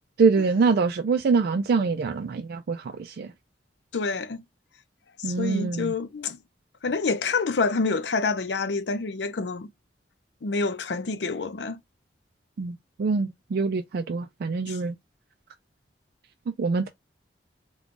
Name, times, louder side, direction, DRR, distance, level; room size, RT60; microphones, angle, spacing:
voice 1, 0.2-3.3 5.2-5.9 12.6-15.0 16.6-16.9, right 4 dB, 60° right, 0.3 m, -24 dB
voice 2, 3.9-4.4 5.2-6.4 6.8-9.7 10.4-11.8 14.7-14.8, left 4 dB, 70° left, 0.5 m, -27 dB
3.6 x 2.3 x 3.7 m
head